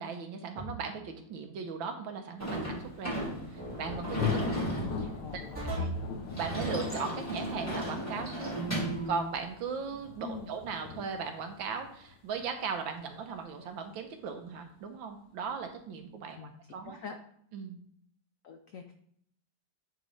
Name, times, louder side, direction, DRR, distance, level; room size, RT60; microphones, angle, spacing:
voice 1, 0.0-3.2 3.5-5.4 5.7-5.9 6.4-8.5 9.1-17.0 17.5-17.8, right 5 dB, 80° right, 5 dB, 1.6 m, -38 dB
sound 1, 0.5-1.0 3.6-4.0 5.5-6.1 8.5-9.3, right 1 dB, 40° right, 2.9 m, -36 dB
Sliding door / Slam, 2.4-9.1, equal, 10° left, 2.0 m, -36 dB
Thunder, 2.8-14.4, left 7 dB, 65° left, 1.3 m, -41 dB
voice 2, 5.2-5.9 10.2-10.5 16.4-16.5 16.8-17.2 18.4-18.9, left 6 dB, 85° left, 5 dB, 0.7 m, -44 dB
9.4 x 4.0 x 3.2 m, 0.68 s
omnidirectional pair, 2.1 m